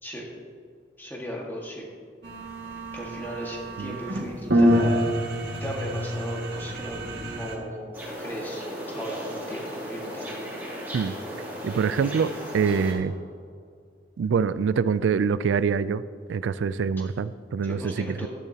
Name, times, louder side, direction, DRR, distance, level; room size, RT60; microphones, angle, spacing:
voice 1, 1.0-1.8 2.9-5.1 5.6-7.9 8.2-10.3 17.6-18.3, equal, 10° left, -2 dB, 1.7 m, -36 dB
sound 1, 2.2-7.6, equal, 60° right, 1.9 m, -26 dB
sound 2, 7.9-12.9, equal, 10° right, 2.6 m, -36 dB
voice 2, 11.6-13.1 14.2-16.0 16.3-18.3, right 6 dB, 80° right, 15 dB, 0.3 m, -25 dB
13.0 x 10.5 x 2.9 m, 2.2 s
head